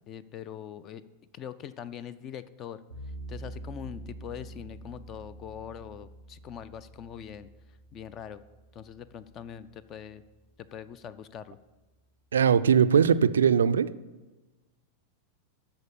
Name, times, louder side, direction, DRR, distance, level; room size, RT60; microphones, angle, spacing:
voice 1, 0.1-1.0 1.3-2.8 3.3-7.5 7.9-8.4 8.7-10.2 10.6-11.6, left 9 dB, 30° left, 0.4 m, -42 dB
sound 1, 2.9-10.0, right 2 dB, 85° left, 2.2 m, -46 dB
voice 2, 12.3-13.9, right 7 dB, 65° right, 0.3 m, -21 dB
13.0 x 4.3 x 7.0 m
figure-of-eight pair, 90°, 0 cm